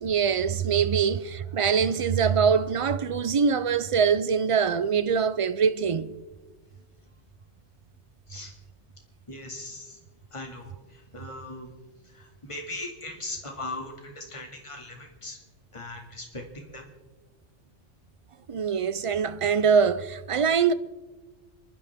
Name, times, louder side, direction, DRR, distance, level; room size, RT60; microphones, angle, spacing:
voice 1, 0.0-6.1 18.5-20.7, right 6 dB, 55° right, 0.3 m, -23 dB
voice 2, 9.3-10.0 10.3-11.7 12.0-15.4 15.7-16.9, left 2 dB, 25° left, 2.2 m, -39 dB
29.5 x 12.0 x 3.5 m
omnidirectional pair, 1.2 m